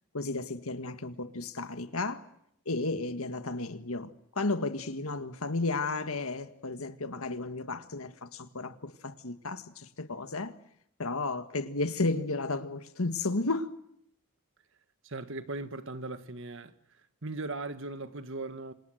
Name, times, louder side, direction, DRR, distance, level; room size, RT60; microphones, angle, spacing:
voice 1, 0.1-2.3 2.6-10.5 11.0-13.8, left 3 dB, 75° left, 1.7 m, -33 dB
voice 2, 15.0-16.7 17.2-18.7, right 2 dB, 60° right, 1.5 m, -38 dB
28.0 x 26.5 x 7.9 m
head